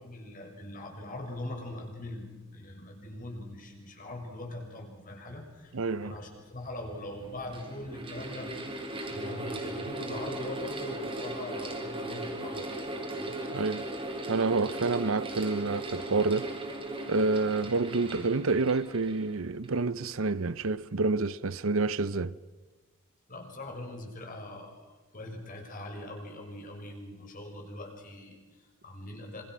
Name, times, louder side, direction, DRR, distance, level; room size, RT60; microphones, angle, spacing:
voice 1, 0.0-8.6 9.1-13.4 23.3-29.4, left 1 dB, 40° left, 6.1 m, -42 dB
voice 2, 5.7-6.1 13.5-13.8 14.3-16.5 17.1-22.3, right 3 dB, 70° right, 0.7 m, -28 dB
Mechanical fan, 6.2-6.3 7.2-19.8, right 2 dB, 25° right, 4.3 m, -38 dB
27.0 x 26.5 x 6.4 m
head